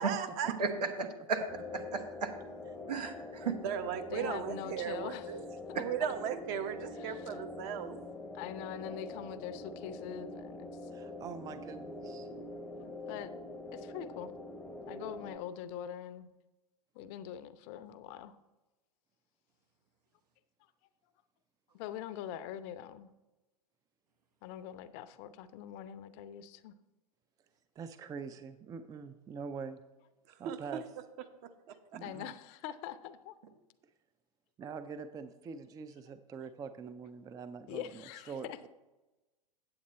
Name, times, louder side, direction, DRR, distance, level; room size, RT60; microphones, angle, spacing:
voice 1, 0.0-0.5 3.6-5.4 5.7-8.0 30.4-30.8, right 8 dB, 45° right, 8 dB, 1.0 m, -36 dB
voice 2, 0.6-1.4 1.9-2.3 2.9-3.6 5.7-5.8, right 5 dB, 80° right, 5 dB, 1.3 m, -34 dB
sound 1, 1.5-15.4, left 2 dB, 10° left, 0.7 m, -45 dB
voice 3, 4.1-5.3 5.7-5.8 7.0-7.4 8.3-10.9 12.8-13.3 13.7-14.3 14.9-16.3 16.9-18.4 21.7-23.1 24.4-26.8 32.0-33.4 37.7-38.6, left 10 dB, 45° left, 13 dB, 0.6 m, -43 dB
voice 4, 10.9-12.3 27.8-29.8 30.4-30.8 31.9-32.3 34.6-38.7, right 5 dB, 20° right, 10 dB, 0.4 m, -44 dB
8.8 x 7.8 x 4.2 m, 1.1 s
hypercardioid pair, 100°, 20 cm